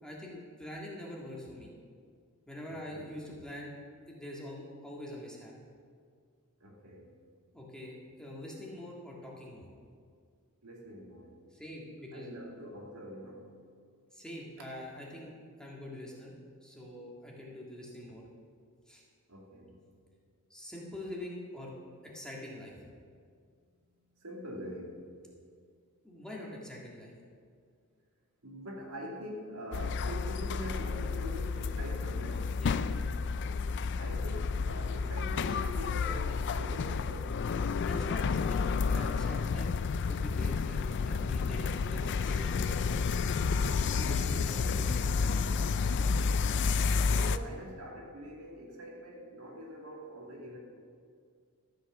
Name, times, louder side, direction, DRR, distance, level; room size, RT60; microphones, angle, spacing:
voice 1, 0.0-1.7 2.5-3.7 4.1-5.5 7.5-9.7 11.5-12.3 14.1-16.3 16.6-18.2 18.9-19.0 20.5-21.7 22.1-22.8 26.0-27.1 32.6-32.8 37.9-39.7 40.1-40.8 41.1-43.1 43.6-45.7, left 1 dB, 5° left, -4 dB, 1.9 m, -44 dB
voice 2, 2.7-3.1 6.6-7.1 10.6-11.4 12.1-13.5 14.6-14.9 19.3-19.8 23.6-25.5 28.4-32.6 34.0-37.4 47.1-50.6, equal, 75° right, -1 dB, 2.3 m, -44 dB
sound 1, 29.7-47.4, left 5 dB, 50° left, 0.4 m, -30 dB
13.0 x 7.9 x 6.0 m, 2.1 s
head